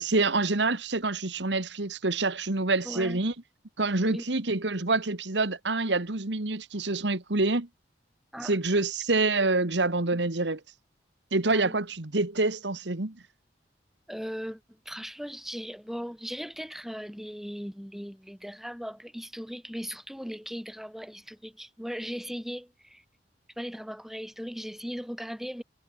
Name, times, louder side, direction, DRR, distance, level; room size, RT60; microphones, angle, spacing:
voice 1, 0.0-3.3 3.8-7.7 8.4-10.6 11.3-13.1, right 3 dB, 70° right, 1.7 m, -27 dB
voice 2, 2.8-3.2 4.0-4.2 8.3-8.6 11.5-11.8 14.1-23.0 23.6-25.6, equal, ahead, 7.9 m, -38 dB
head